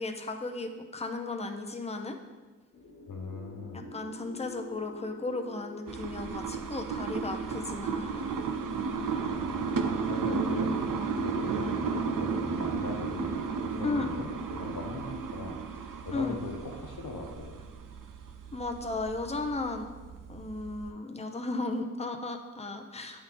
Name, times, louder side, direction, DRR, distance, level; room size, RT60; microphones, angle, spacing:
voice 1, 0.0-2.2 3.7-8.3 13.8-14.1 16.1-16.4 18.5-19.9 20.3-23.2, left 2 dB, 20° left, 5 dB, 0.6 m, -35 dB
sound 1, 2.7-7.8, left 3 dB, 40° left, 1.5 m, -48 dB
voice 2, 3.1-3.9 9.2-10.7 11.1-17.6, left 3 dB, 85° left, 2 dB, 1.0 m, -40 dB
sound 2, 5.9-20.9, right 5 dB, 85° right, 0.5 m, -34 dB
8.7 x 3.7 x 3.8 m, 1.3 s
cardioid pair, 55°, 32 cm